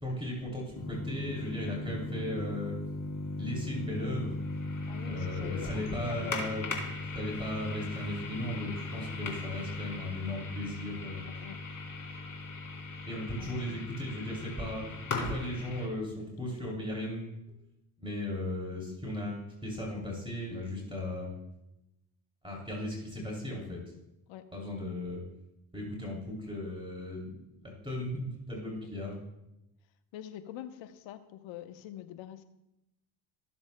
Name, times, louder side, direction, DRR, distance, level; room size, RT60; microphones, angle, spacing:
voice 1, 0.0-2.7 3.4-4.3 5.0-6.6 7.1-11.3 13.1-14.8 15.1-17.3 18.0-21.3 22.4-23.8 24.5-25.2 25.7-27.3 27.8-29.2, left 1 dB, 10° right, -3 dB, 2.9 m, -36 dB
sound 1, 0.7-15.9, left 3 dB, 45° left, 3.0 m, -38 dB
voice 2, 4.9-6.4 11.3-11.6 13.4-13.9 24.3-24.5 30.1-32.4, left 11 dB, 80° left, 9 dB, 0.9 m, -45 dB
18.5 x 7.1 x 2.2 m, 0.91 s
supercardioid pair, 70°, 46 cm